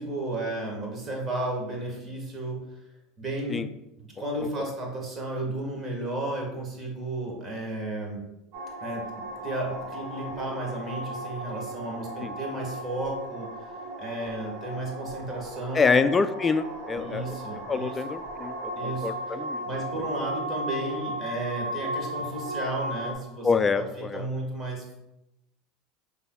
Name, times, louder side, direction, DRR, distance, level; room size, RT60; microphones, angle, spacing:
voice 1, 0.0-2.6 3.2-3.6 4.0-8.2 8.8-13.7 14.0-16.0 16.9-17.9 18.7-19.4 19.6-23.5 23.7-25.0, right 2 dB, 30° right, 0 dB, 1.5 m, -33 dB
sound 1, 8.5-23.1, right 1 dB, 65° right, 0.9 m, -36 dB
voice 2, 15.7-17.2 17.7-19.7 23.4-24.3, left 4 dB, 25° left, 11 dB, 0.3 m, -26 dB
5.4 x 3.5 x 2.3 m, 0.89 s
hypercardioid pair, 85°, 0 cm